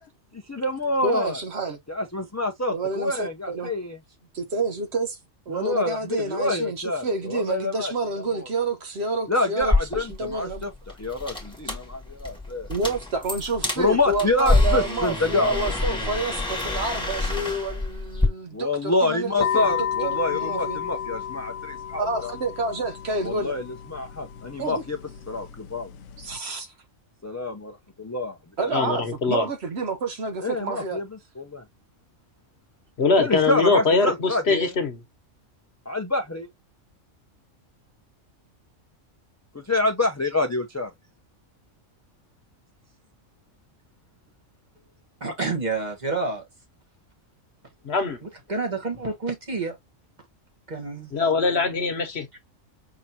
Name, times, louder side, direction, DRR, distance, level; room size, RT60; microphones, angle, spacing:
voice 1, 0.3-1.4 1.9-4.0 5.5-7.9 8.3-8.5 9.3-10.7 11.0-12.7 13.8-15.6 15.8-16.0 18.5-22.3 23.2-25.0 25.3-25.9 27.2-29.0 30.4-31.1 31.4-31.6 33.2-34.7 35.9-36.5 39.5-40.9, left 2 dB, 20° left, 0.4 m, -27 dB
voice 2, 1.0-1.8 2.7-3.7 4.3-5.2 5.5-10.7 12.7-19.7 20.0-20.8 22.0-23.5 24.6-24.8 26.3-26.7 28.6-31.0, right 3 dB, 60° right, 1.0 m, -29 dB
sound 1, 9.6-18.3, left 2 dB, 5° left, 1.2 m, -27 dB
sound 2, 19.4-26.4, left 9 dB, 75° left, 0.9 m, -32 dB
voice 3, 28.7-29.5 33.0-35.0 47.8-48.2 51.1-52.4, left 4 dB, 55° left, 1.3 m, -22 dB
voice 4, 45.2-46.5 48.2-49.8 50.7-51.1 52.3-52.4, right 3 dB, 35° right, 1.4 m, -29 dB
5.7 x 3.0 x 2.7 m
omnidirectional pair, 1.3 m